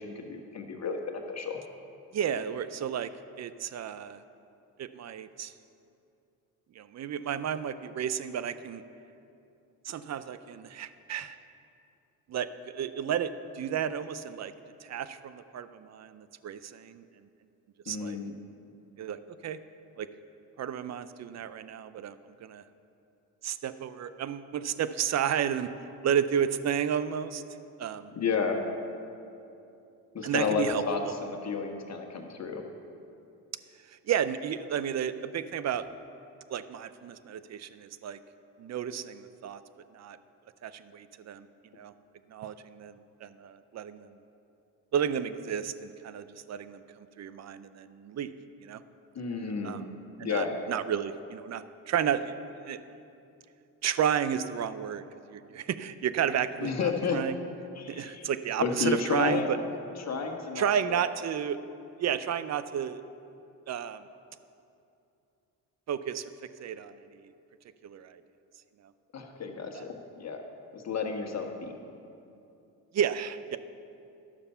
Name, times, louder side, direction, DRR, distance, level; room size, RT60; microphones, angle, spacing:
voice 1, 0.0-1.6 17.9-18.3 28.1-28.6 30.1-32.6 49.1-49.8 50.2-50.5 56.6-57.2 57.7-58.3 58.6-59.5 60.0-61.0 69.1-70.4 70.7-71.7, left 5 dB, 40° left, 3 dB, 1.5 m, -31 dB
voice 2, 2.1-3.1 3.4-4.2 4.8-5.5 6.8-8.8 9.8-11.4 12.3-13.3 13.6-14.5 14.8-17.0 17.9-18.2 19.0-19.6 20.0-20.1 20.6-22.1 22.4-22.6 23.4-25.7 26.0-27.4 27.8-28.1 30.2-31.1 34.1-35.9 36.5-38.2 38.6-39.6 39.9-40.2 40.6-41.5 41.8-41.9 42.3-44.1 44.9-48.3 48.6-48.8 49.6-49.8 50.2-52.3 52.6-52.8 53.8-55.0 55.3-57.4 57.9-59.6 60.6-61.6 62.0-63.0 63.7-64.0 65.9-66.2 66.6-66.9 67.8-68.2 69.7-69.9 72.9-73.6, right 8 dB, 40° right, 13 dB, 0.6 m, -32 dB
12.0 x 6.8 x 5.6 m, 2.7 s
supercardioid pair, 70°, 40 cm